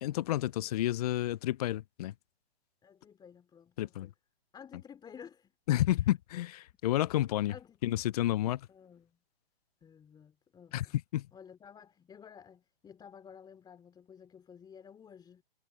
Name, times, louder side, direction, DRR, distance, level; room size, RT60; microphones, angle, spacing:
voice 1, 0.0-2.1 3.8-4.1 5.7-7.5 7.8-8.7 10.7-10.9 11.1-11.3, left 14 dB, 40° left, 0.5 m, -30 dB
voice 2, 2.8-4.1 4.5-5.5 5.8-6.1 7.5-8.0 8.7-9.2 9.8-11.0 11.3-15.4, left 7 dB, 15° left, 3.3 m, -53 dB
hypercardioid pair, 135°, 32 cm